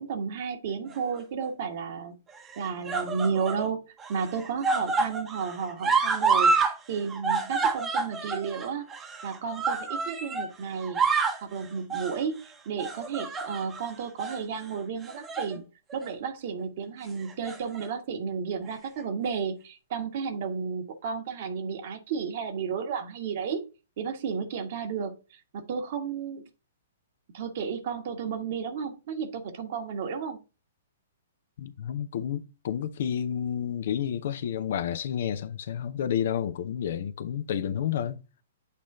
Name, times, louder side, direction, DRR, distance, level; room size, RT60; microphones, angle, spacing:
voice 1, 0.0-2.1 2.6-8.8 9.2-11.0 11.4-12.4 12.6-15.6 15.9-23.6 24.0-25.1 25.5-26.4 27.3-30.4, right 6 dB, 45° right, 1.4 m, -32 dB
sound 1, 0.9-1.5 2.4-3.7 4.0-6.8 7.0-10.5 10.8-11.4 11.9-12.2 12.8-13.8 14.2-14.4 15.0-15.6 15.9-16.1 17.2-17.9 18.7-18.8, right 4 dB, 15° right, 1.0 m, -28 dB
voice 2, 31.6-38.2, left 9 dB, 50° left, 0.6 m, -30 dB
8.4 x 3.1 x 3.7 m
figure-of-eight pair, 115°, 0 cm